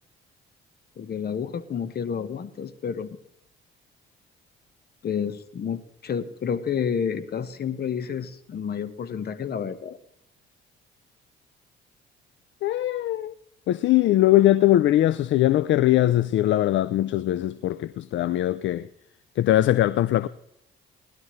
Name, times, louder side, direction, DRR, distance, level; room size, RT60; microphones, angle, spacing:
voice 1, 1.0-3.2 5.0-10.0, left 7 dB, 50° left, 1.3 m, -30 dB
voice 2, 12.6-13.3 13.7-18.8 19.4-20.3, left 14 dB, 70° left, 0.5 m, -21 dB
19.0 x 12.0 x 3.2 m
cardioid pair, 90°, 20 cm